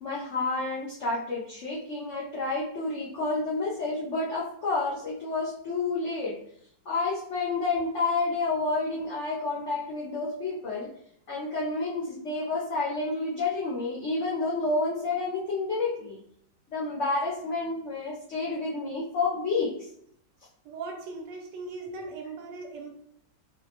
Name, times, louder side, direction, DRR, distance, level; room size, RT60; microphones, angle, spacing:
voice 1, 0.0-6.4 6.9-10.9 11.3-16.2 16.7-19.7 21.9-22.1, left 3 dB, 80° left, -6 dB, 0.6 m, -29 dB
voice 2, 20.6-22.9, right 4 dB, 75° right, 2 dB, 1.2 m, -39 dB
4.0 x 2.1 x 2.8 m, 0.69 s
omnidirectional pair, 2.0 m